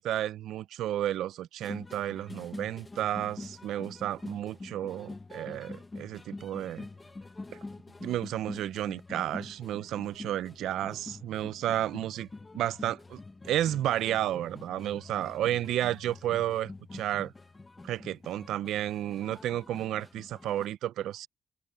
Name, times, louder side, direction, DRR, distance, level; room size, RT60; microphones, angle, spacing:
voice 1, 0.0-6.9 8.0-12.3 12.5-13.2 13.4-17.3 17.8-21.3, right 12 dB, 85° right, 0.5 m, -32 dB
sound 1, 1.6-20.7, left 3 dB, 20° left, 1.0 m, -46 dB
cardioid pair, 125°, 0 cm